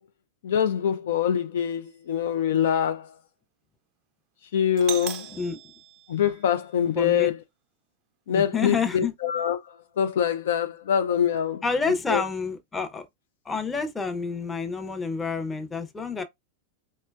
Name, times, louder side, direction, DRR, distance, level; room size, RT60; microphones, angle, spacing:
voice 1, 0.4-3.1 4.5-5.3 6.1-7.4 8.3-11.6 12.1-12.2, left 9 dB, 60° left, 0.3 m, -24 dB
Doorbell, 4.8-6.8, right 11 dB, 40° right, 0.4 m, -38 dB
voice 2, 5.3-5.6 6.9-7.3 8.3-9.1 11.6-13.1 13.5-16.2, left 5 dB, 10° left, 0.6 m, -28 dB
4.3 x 2.1 x 2.2 m
figure-of-eight pair, 90°, 0 cm